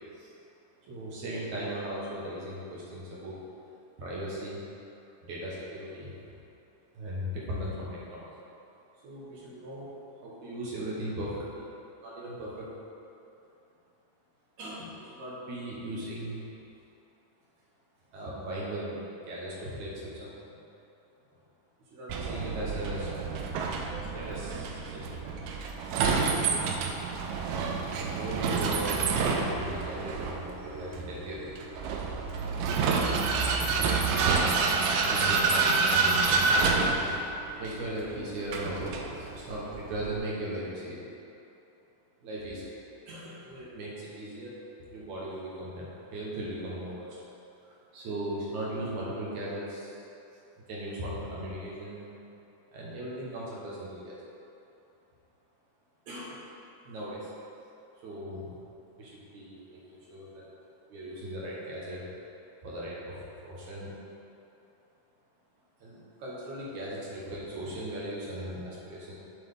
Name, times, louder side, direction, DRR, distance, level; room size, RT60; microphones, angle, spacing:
voice 1, 0.9-3.4 4.0-4.6 5.2-6.1 6.9-8.3 9.0-9.9 10.2-11.6 12.0-12.7 14.6-16.4 18.1-20.6 21.9-23.1 24.1-25.2 28.0-31.7 33.7-41.0 42.2-42.8 43.1-44.6 44.9-47.2 47.6-50.0 50.7-52.1 52.7-54.3 56.1-56.4 56.8-57.3 58.0-58.5 59.0-60.5 60.9-62.0 62.6-63.9 65.8-69.1, right 1 dB, 65° right, -6 dB, 2.2 m, -38 dB
Vehicle, 22.1-40.2, right 4 dB, 80° right, 2.4 m, -28 dB
7.1 x 6.9 x 3.6 m, 2.8 s
omnidirectional pair, 4.6 m